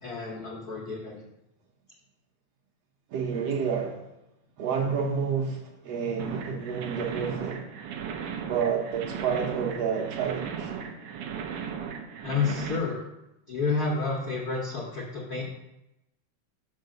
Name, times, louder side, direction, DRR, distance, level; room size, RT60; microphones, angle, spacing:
voice 1, 0.0-1.2 12.2-13.0 13.5-15.4, left 4 dB, 80° left, -2 dB, 0.8 m, -30 dB
voice 2, 3.1-4.1 4.6-7.7 8.5-10.7, right 6 dB, 65° right, 0 dB, 1.7 m, -29 dB
sound 1, 6.2-12.8, right 7 dB, 85° right, 1.2 m, -36 dB
5.8 x 4.6 x 6.4 m, 0.90 s
omnidirectional pair, 3.4 m